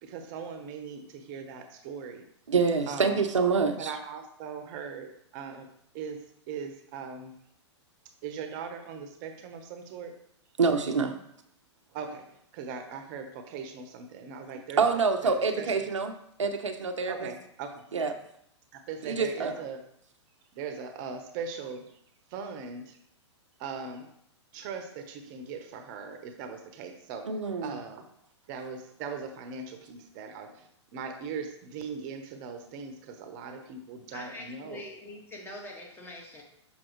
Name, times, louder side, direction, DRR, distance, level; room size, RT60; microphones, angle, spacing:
voice 1, 0.0-2.2 2.9-3.2 3.8-5.7 5.9-7.3 8.2-10.1 11.9-14.8 15.2-15.7 17.1-17.9 18.7-19.8 20.5-21.9 22.3-23.0 23.6-24.1 24.5-27.3 27.6-28.1 28.5-34.8, right 5 dB, 40° right, 6 dB, 0.9 m, -40 dB
voice 2, 2.5-3.9 10.6-11.2 14.8-17.3 17.9-18.1 19.0-19.6 27.2-27.8, right 4 dB, 85° right, 6 dB, 0.8 m, -26 dB
voice 3, 34.1-36.4, left 1 dB, 15° left, -1 dB, 1.6 m, -43 dB
6.2 x 5.8 x 3.0 m, 0.71 s
hypercardioid pair, 120°, 15 cm